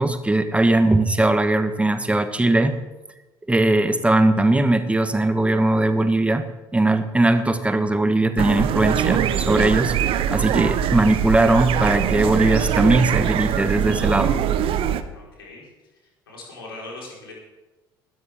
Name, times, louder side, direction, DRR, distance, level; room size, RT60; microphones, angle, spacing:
voice 1, 0.0-2.8 3.5-6.5 6.7-14.4, right 2 dB, 10° right, 10 dB, 1.3 m, -19 dB
sound 1, 8.4-15.0, right 10 dB, 50° right, 0.9 m, -22 dB
voice 2, 15.1-15.6 16.3-17.3, left 2 dB, 80° left, -3 dB, 4.3 m, -39 dB
20.0 x 12.5 x 3.6 m, 1.1 s
figure-of-eight pair, 55°, 12 cm